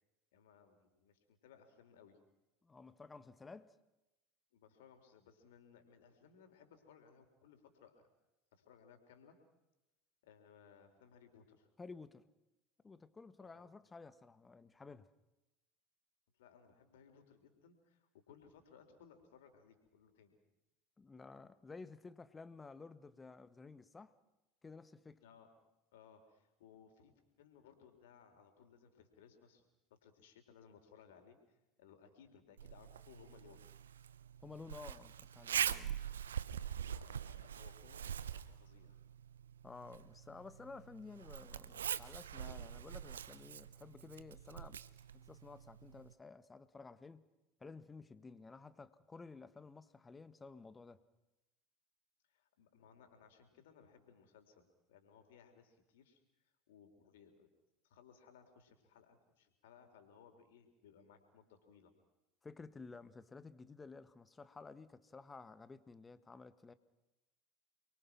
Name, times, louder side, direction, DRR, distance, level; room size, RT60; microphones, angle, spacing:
voice 1, 0.3-2.2 4.5-7.9 8.5-9.4 10.2-11.7 13.4-13.7 16.3-20.4 25.2-25.5 25.9-27.1 27.4-29.7 30.0-33.7 36.9-39.0 52.3-57.5 57.8-61.9, left 7 dB, 75° left, 4.0 m, -63 dB
voice 2, 2.6-3.7 11.8-12.3 12.8-15.1 21.0-24.2 24.6-25.2 34.4-36.0 39.6-44.8 45.1-47.3 47.6-51.0 62.4-66.7, left 4 dB, 20° left, 1.6 m, -53 dB
Zipper (clothing), 32.6-46.1, right 9 dB, 85° right, 0.8 m, -44 dB
29.5 x 23.0 x 6.1 m
hypercardioid pair, 75°, 0 cm